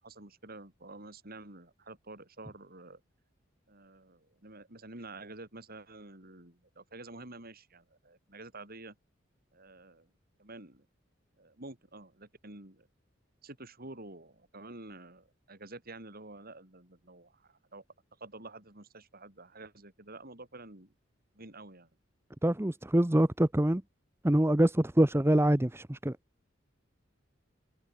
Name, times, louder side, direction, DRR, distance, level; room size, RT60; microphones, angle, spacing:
voice 1, 0.0-3.0 3.7-9.0 9.5-10.1 10.4-10.9 11.4-12.9 13.4-17.8 18.2-20.9 21.3-21.9, right 2 dB, 50° right, 6.2 m, -49 dB
voice 2, 22.4-23.8 24.2-26.2, right 1 dB, 15° right, 0.9 m, -25 dB
head